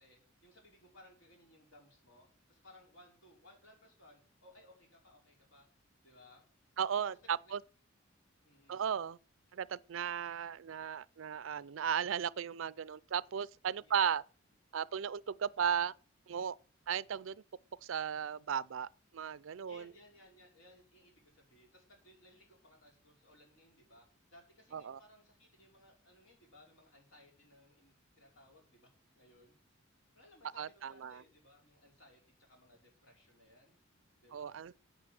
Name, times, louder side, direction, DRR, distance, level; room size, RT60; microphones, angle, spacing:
voice 1, 0.0-5.7 6.0-6.4 7.0-7.5 8.4-8.9 13.8-14.1 19.6-29.6 30.1-33.8 34.2-34.6, left 1 dB, 75° left, 4.9 m, -62 dB
voice 2, 6.8-7.6 8.7-9.2 9.5-14.2 14.7-15.9 16.3-16.6 16.9-17.4 17.8-18.9 19.1-19.8 24.7-25.0 30.6-31.2 34.3-34.7, right 8 dB, 75° right, 0.4 m, -36 dB
9.3 x 8.1 x 7.7 m
head